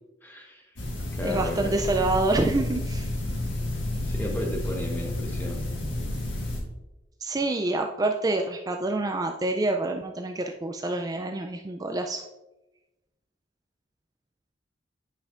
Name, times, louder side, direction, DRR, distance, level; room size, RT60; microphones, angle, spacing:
voice 1, 0.2-0.8 1.1-1.7 2.0-2.1 4.0-5.6, left 1 dB, 10° left, 0 dB, 1.1 m, -34 dB
sound 1, 0.8-6.6, left 1 dB, 80° left, 1.5 m, -30 dB
voice 2, 1.2-3.1 7.2-12.2, right 2 dB, 20° right, 4 dB, 0.3 m, -27 dB
9.8 x 5.4 x 2.5 m, 1.0 s
head